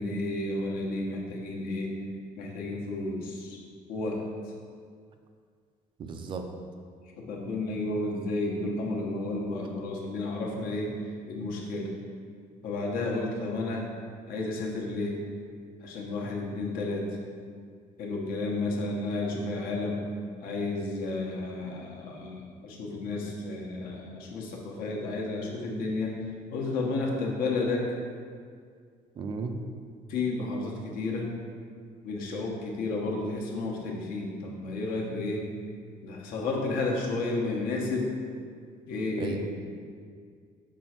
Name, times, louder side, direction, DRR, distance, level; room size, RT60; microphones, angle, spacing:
voice 1, 0.0-2.0 2.3-3.6 3.9-4.3 7.2-10.9 11.3-11.9 12.6-13.9 14.3-15.2 15.8-17.1 18.0-20.0 20.4-26.1 26.5-27.9 30.1-31.3 32.0-35.4 36.0-38.1 38.9-39.5, left 2 dB, 80° left, -1 dB, 1.2 m, -32 dB
voice 2, 6.0-6.5 29.2-29.5 39.2-39.5, right 4 dB, 35° right, 5 dB, 0.5 m, -34 dB
6.1 x 3.8 x 6.0 m, 2.1 s
cardioid pair, 180°, 14 cm